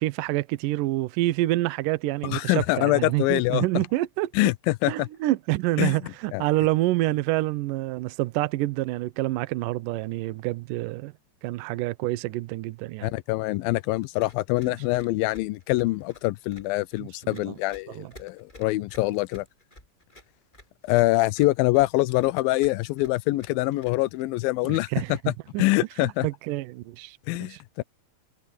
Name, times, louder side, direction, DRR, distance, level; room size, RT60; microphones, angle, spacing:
voice 1, 0.0-4.3 4.9-11.1 11.4-13.1 17.2-17.6 17.9-18.1 24.6-25.6 26.0-27.6, right 17 dB, 85° right, 1.9 m, -27 dB
voice 2, 2.2-3.7 4.3-5.1 5.8-6.4 13.0-19.5 20.8-25.2 25.6-26.3 27.3-27.8, left 19 dB, 80° left, 2.1 m, -25 dB
Run, 14.2-24.2, left 1 dB, 10° left, 7.8 m, -51 dB
omnidirectional pair, 4.8 m